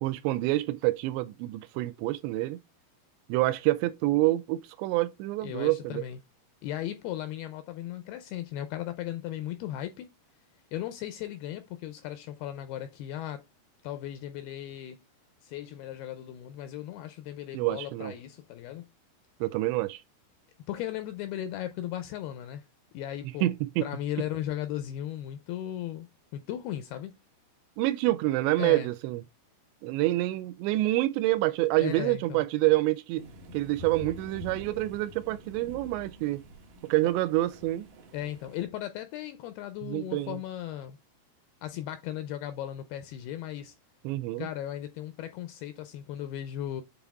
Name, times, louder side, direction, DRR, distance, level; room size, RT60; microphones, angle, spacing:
voice 1, 0.0-2.6 3.3-6.0 17.5-18.1 19.4-20.0 23.2-23.9 27.8-29.2 29.8-33.2 33.5-36.4 36.8-37.9 39.8-40.4 44.0-44.5, right 17 dB, 85° right, 2.8 m, -27 dB
voice 2, 5.4-6.2 6.6-10.1 10.7-13.5 13.8-15.0 15.4-18.9 20.7-22.7 22.9-23.5 23.8-26.1 26.3-27.2 28.6-28.9 31.8-32.5 38.1-41.0 41.6-43.8 44.4-46.8, left 12 dB, 85° left, 2.3 m, -36 dB
sound 1, 33.2-38.7, left 1 dB, 65° right, 2.3 m, -47 dB
8.3 x 3.5 x 3.4 m
omnidirectional pair, 5.0 m